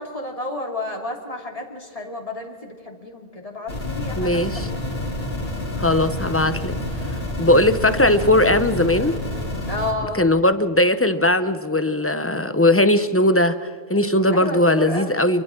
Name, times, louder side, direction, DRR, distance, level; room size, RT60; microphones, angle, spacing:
voice 1, 0.0-4.7 9.7-10.3 14.3-15.2, left 2 dB, 35° left, 1 dB, 2.9 m, -31 dB
sound 1, 3.7-9.9, left 1 dB, 70° left, 3.7 m, -28 dB
voice 2, 4.2-4.7 5.8-6.8 7.4-9.2 10.1-15.4, left 1 dB, 15° left, 11 dB, 0.7 m, -19 dB
29.0 x 24.0 x 3.8 m, 2.1 s
omnidirectional pair, 1.0 m